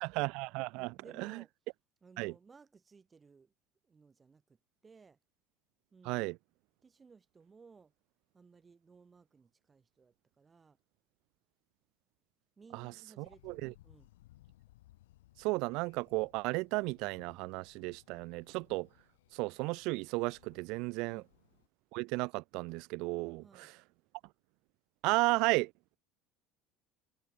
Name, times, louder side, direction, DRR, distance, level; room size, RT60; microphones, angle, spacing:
voice 1, 0.0-0.9 1.2-1.3 2.2-2.3 6.1-6.3 12.7-12.9 13.2-13.7 15.4-18.9 19.3-21.2 21.9-23.4 25.0-25.7, right 25 dB, 70° right, 0.3 m, -34 dB
voice 2, 0.7-1.5 2.0-3.5 3.8-5.2 5.9-6.3 6.8-7.9 8.3-10.8 12.6-14.1 21.1-21.3 23.4-23.7, right 5 dB, 25° right, 5.8 m, -60 dB
Thunder, 13.2-21.7, left 16 dB, 90° left, 3.7 m, -64 dB
supercardioid pair, 90°, 0 cm